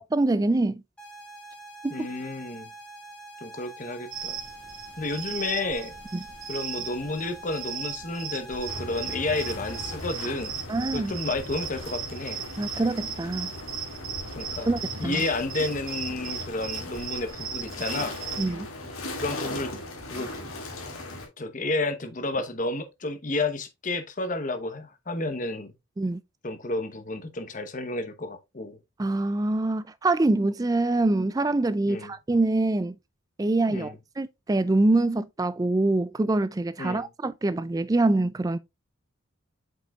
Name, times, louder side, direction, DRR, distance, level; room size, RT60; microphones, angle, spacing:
voice 1, 0.1-0.8 1.8-2.1 6.1-6.2 10.7-11.1 12.6-13.5 14.7-15.2 18.4-18.7 26.0-26.2 29.0-33.0 33.4-38.6, right 2 dB, 15° right, 0.3 m, -25 dB
sound 1, 1.0-10.0, right 2 dB, 5° left, 1.5 m, -45 dB
voice 2, 1.9-2.7 3.4-4.4 5.0-5.9 6.5-10.6 10.9-12.4 14.3-14.7 15.0-18.2 19.2-19.7 20.1-20.3 21.4-25.7 26.4-28.8 31.9-32.1 33.7-33.9 36.8-37.1, left 2 dB, 35° left, 0.9 m, -31 dB
sound 2, 4.1-18.5, right 7 dB, 75° right, 1.7 m, -37 dB
sound 3, 8.6-21.3, left 1 dB, 85° left, 2.2 m, -38 dB
7.6 x 5.4 x 2.3 m
head